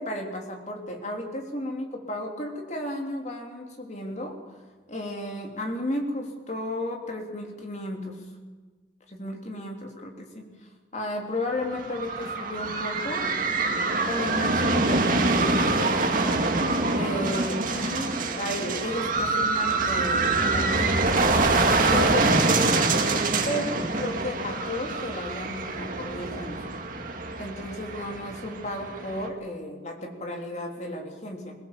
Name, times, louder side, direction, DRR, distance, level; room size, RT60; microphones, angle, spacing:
voice 1, 0.0-4.4 4.9-8.2 9.1-16.6 16.9-21.1 21.6-26.6 27.4-31.6, left 1 dB, 40° left, 2 dB, 3.3 m, -34 dB
sound 1, 11.6-29.3, right 3 dB, 50° right, 2.3 m, -25 dB
22.5 x 17.5 x 7.5 m, 1.4 s
head